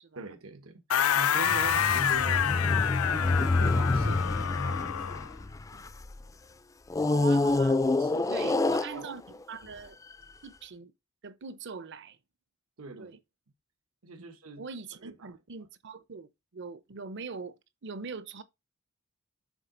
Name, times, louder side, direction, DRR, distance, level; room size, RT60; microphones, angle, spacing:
voice 1, 0.1-5.0 5.7-5.8 8.0-8.5 8.9-9.1 12.8-13.2 14.0-14.6 15.0-15.3, right 3 dB, 85° right, 1.2 m, -43 dB
sound 1, 0.9-5.3, left 9 dB, 85° left, 0.5 m, -28 dB
sound 2, 1.5-6.2 6.9-9.4 10.1-10.2, left 2 dB, 15° left, 0.3 m, -27 dB
voice 2, 7.1-7.8 8.3-9.2 9.5-10.0 10.4-10.9 11.2-12.2 13.0-13.2 14.2-14.3 14.6-17.6 17.8-18.4, right 5 dB, 55° right, 0.7 m, -42 dB
7.3 x 3.9 x 3.8 m
head